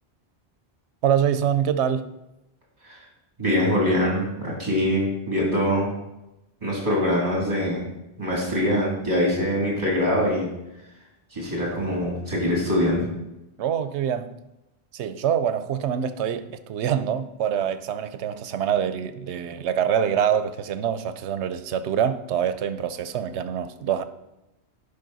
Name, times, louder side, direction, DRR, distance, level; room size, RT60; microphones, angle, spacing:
voice 1, 1.0-2.1 13.6-14.3 14.9-24.0, right 9 dB, 85° right, 0.9 m, -25 dB
voice 2, 3.4-5.9 6.6-7.8 8.2-10.5 11.3-13.1, left 1 dB, 40° right, 2.9 m, -23 dB
11.0 x 5.1 x 4.0 m
omnidirectional pair, 1.1 m